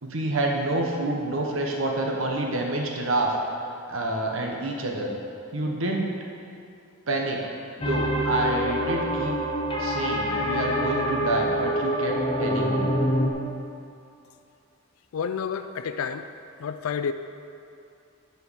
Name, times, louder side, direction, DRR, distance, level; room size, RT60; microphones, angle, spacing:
voice 1, 0.0-3.3 3.9-5.1 5.5-6.1 7.1-7.5 7.8-9.4 9.8-12.9, right 2 dB, 75° right, 1 dB, 1.0 m, -27 dB
sound 1, 7.8-13.3, equal, 25° left, 1.0 m, -26 dB
voice 2, 15.1-16.3 16.6-17.1, left 6 dB, 85° left, 9 dB, 0.4 m, -29 dB
10.0 x 4.8 x 6.3 m, 2.6 s
head